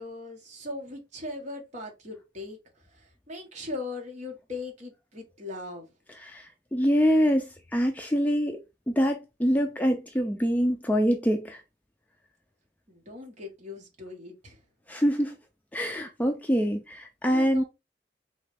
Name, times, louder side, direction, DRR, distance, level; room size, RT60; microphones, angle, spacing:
voice 1, 0.0-2.6 2.9-5.9 12.9-14.6 17.2-17.6, left 2 dB, 40° right, 1.4 m, -39 dB
voice 2, 6.2-8.6 8.9-11.6 14.9-15.4 15.7-17.6, equal, 10° left, 0.4 m, -25 dB
4.1 x 3.2 x 3.3 m
head